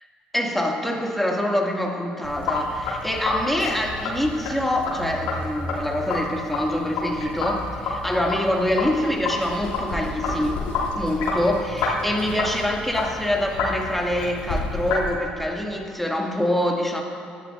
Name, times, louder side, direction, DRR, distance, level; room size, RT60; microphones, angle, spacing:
voice 1, 0.3-10.6 10.9-17.0, left 1 dB, 5° left, 0 dB, 2.3 m, -25 dB
Sink (filling or washing), 2.2-15.1, left 3 dB, 65° left, 2.9 m, -29 dB
24.5 x 11.0 x 2.6 m, 2.4 s
hypercardioid pair, 55°, 4 cm